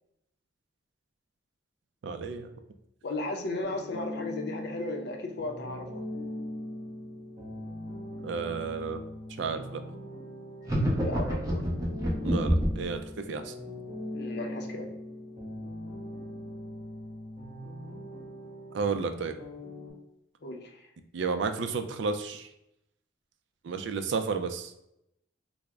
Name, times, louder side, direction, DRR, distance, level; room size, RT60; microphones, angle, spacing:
voice 1, 2.0-2.5 8.2-9.0 9.4-9.8 12.2-13.0 13.3-13.5 18.7-19.3 21.1-22.5 23.6-24.7, right 4 dB, 70° right, 8 dB, 0.3 m, -32 dB
voice 2, 3.0-6.0 11.0-11.7 14.1-14.9 20.4-20.8, left 2 dB, 60° left, 3 dB, 0.5 m, -35 dB
sound 1, 3.6-19.9, left 1 dB, 40° right, 1.3 m, -41 dB
sound 2, 10.6-12.9, equal, 20° right, 0.8 m, -27 dB
3.5 x 2.0 x 3.4 m, 0.82 s
head